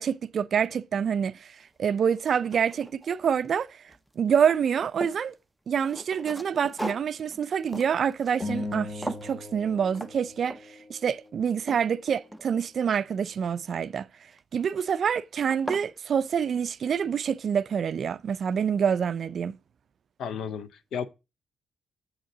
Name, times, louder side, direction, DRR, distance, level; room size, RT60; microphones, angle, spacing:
voice 1, 0.0-3.8 4.2-5.3 5.7-14.1 14.5-19.6, right 7 dB, 55° right, 0.4 m, -27 dB
sound 1, 1.6-1.7 2.2-3.6 3.9-5.3 5.8-8.8 9.0-9.4 9.9-10.2 10.5-10.8 11.3-12.8 14.3-14.7 15.2-15.3 15.5-15.9, right 1 dB, ahead, 0.6 m, -39 dB
sound 2, 8.4-11.0, left 2 dB, 40° left, 1.0 m, -37 dB
voice 2, 20.2-21.1, left 7 dB, 70° left, 0.5 m, -33 dB
7.9 x 3.8 x 6.5 m
cardioid pair, 90°, 0 cm